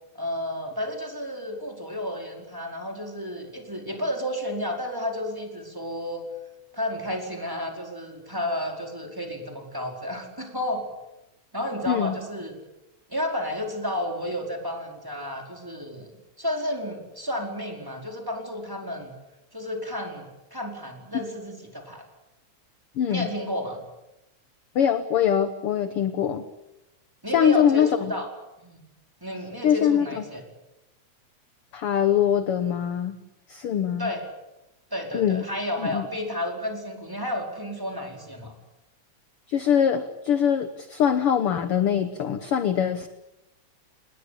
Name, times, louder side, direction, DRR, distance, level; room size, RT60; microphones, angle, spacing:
voice 1, 0.1-6.3 6.7-10.9 11.5-12.6 13.1-16.1 16.4-19.1 19.5-22.1 23.1-23.8 27.2-28.3 28.6-28.8 29.2-30.4 34.0-34.3 34.9-38.5, left 1 dB, 5° right, 2 dB, 4.6 m, -32 dB
voice 2, 23.0-23.3 24.8-26.4 27.3-28.1 29.6-30.1 31.7-33.2 33.5-34.1 35.1-35.4 35.8-36.1 39.5-43.1, left 8 dB, 60° left, 10 dB, 1.8 m, -23 dB
28.5 x 20.5 x 8.6 m, 0.93 s
omnidirectional pair, 3.4 m